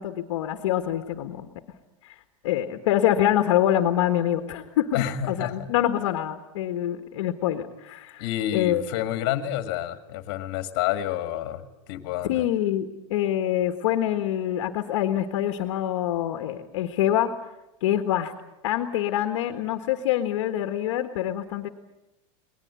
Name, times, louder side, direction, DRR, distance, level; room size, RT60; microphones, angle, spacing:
voice 1, 0.0-1.5 2.0-2.1 2.4-8.2 8.5-8.8 12.3-17.3 17.8-18.3 18.6-21.7, left 12 dB, 55° left, 7 dB, 1.6 m, -25 dB
voice 2, 4.9-5.7 8.2-12.5, left 11 dB, 40° left, 9 dB, 2.0 m, -29 dB
21.5 x 20.0 x 9.6 m, 0.93 s
supercardioid pair, 175°, 17 cm